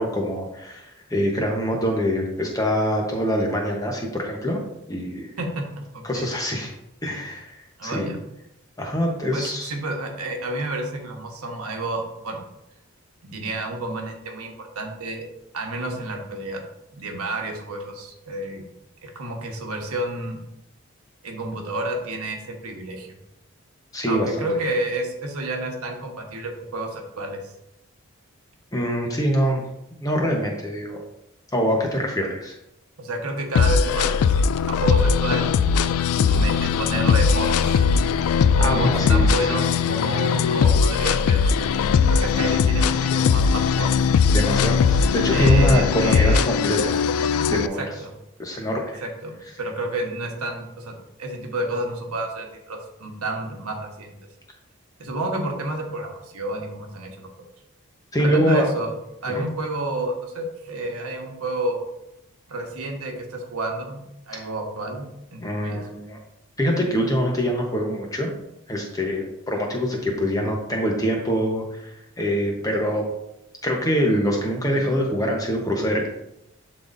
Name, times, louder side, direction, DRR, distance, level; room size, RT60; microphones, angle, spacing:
voice 1, 0.0-4.6 4.9-5.3 6.0-6.7 7.0-7.5 7.8-8.1 8.8-9.7 23.9-24.5 28.7-29.6 29.9-31.0 31.5-32.5 38.6-39.5 44.3-47.8 48.4-49.0 58.1-58.7 59.3-59.4 65.4-66.2 66.6-68.3 68.7-71.9 72.2-73.1 73.6-76.1, equal, 15° left, 0 dB, 0.9 m, -24 dB
voice 2, 5.4-6.3 7.8-8.2 9.3-12.4 13.2-15.3 15.5-16.6 16.9-18.7 19.0-20.4 21.2-23.1 24.0-27.5 33.0-35.5 36.2-37.8 38.6-41.7 42.1-44.1 45.3-46.6 47.8-48.1 49.0-54.1 55.0-57.3 58.2-59.0 59.2-61.8 62.5-65.8 74.7-74.9, right 1 dB, 85° right, 2 dB, 1.2 m, -30 dB
sound 1, 33.6-47.7, left 6 dB, 80° left, 0.3 m, -19 dB
10.5 x 4.0 x 2.6 m, 0.85 s
head